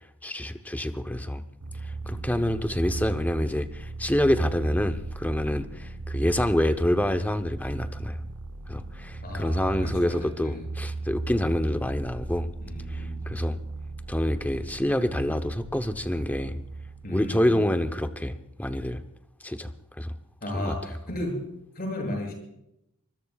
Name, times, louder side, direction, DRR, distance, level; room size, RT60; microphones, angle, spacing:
voice 1, 0.2-1.4 1.8-8.2 8.7-12.5 12.9-13.6 14.1-16.6 17.1-19.0 19.4-19.7 20.0-20.1 20.5-20.7, left 1 dB, 5° left, 8 dB, 0.8 m, -27 dB
sound 1, 1.6-18.3, right 3 dB, 80° right, 0.8 m, -37 dB
voice 2, 2.0-2.4 9.2-10.7 12.6-13.2 17.0-17.7 20.4-21.4 21.7-22.3, left 1 dB, 45° left, 1 dB, 7.4 m, -35 dB
24.5 x 21.0 x 2.4 m, 0.82 s
head